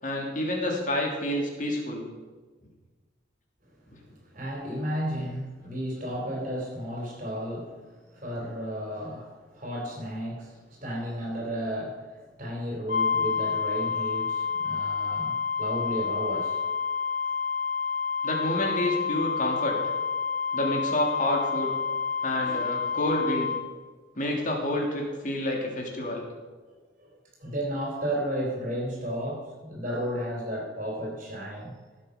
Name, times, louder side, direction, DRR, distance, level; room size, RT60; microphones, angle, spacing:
voice 1, 0.0-2.1 3.9-4.0 18.2-19.8 20.5-21.7 22.2-23.5 24.1-26.3, left 1 dB, 45° left, -1 dB, 2.9 m, -28 dB
voice 2, 4.3-7.8 8.1-16.6 22.4-22.6 27.0-27.1 27.4-31.7, equal, 40° right, -2 dB, 3.3 m, -33 dB
sound 1, 12.9-23.7, left 6 dB, 65° left, 1.3 m, -29 dB
17.0 x 8.0 x 5.2 m, 1.4 s
head